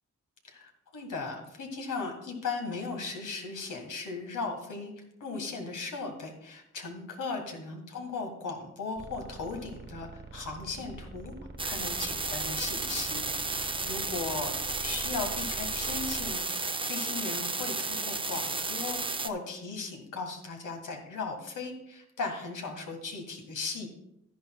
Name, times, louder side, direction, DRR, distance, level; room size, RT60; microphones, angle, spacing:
voice 1, 0.4-11.3 11.6-23.9, left 4 dB, 90° left, 3 dB, 1.9 m, -37 dB
sound 1, 9.0-16.4, right 3 dB, 35° right, 1.2 m, -46 dB
sound 2, 11.6-19.3, right 3 dB, 15° right, 0.6 m, -33 dB
12.0 x 10.5 x 2.3 m, 0.79 s
cardioid pair, 75°, 30 cm